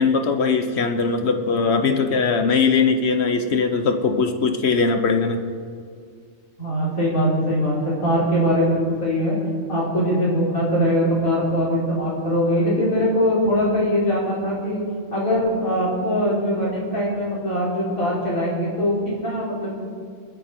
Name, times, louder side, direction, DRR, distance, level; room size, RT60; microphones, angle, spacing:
voice 1, 0.0-5.4, left 4 dB, 55° left, 7 dB, 1.3 m, -20 dB
voice 2, 6.6-9.4 9.7-14.8 15.1-19.7, equal, 85° left, -7 dB, 5.1 m, -22 dB
28.0 x 9.8 x 4.5 m, 2.2 s
omnidirectional pair, 1.4 m